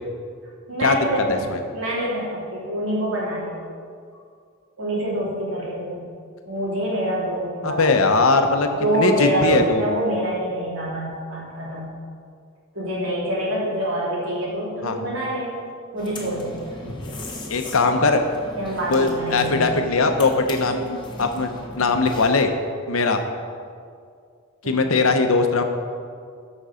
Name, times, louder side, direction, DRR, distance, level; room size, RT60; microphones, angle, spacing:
voice 1, 0.7-3.5 4.8-6.0 6.5-7.8 8.8-11.9 12.7-15.5 15.9-16.9 18.6-19.6 24.6-24.8, right 1 dB, 75° right, -5 dB, 2.9 m, -26 dB
voice 2, 7.6-8.7 8.9-9.8 14.8-15.0 17.5-18.2 18.9-21.5 21.8-22.5 22.9-23.2 24.7-25.6, left 3 dB, 75° left, 6 dB, 0.9 m, -20 dB
sound 1, 16.0-22.5, left 1 dB, 20° left, 1.2 m, -38 dB
14.0 x 5.3 x 5.1 m, 2.2 s
head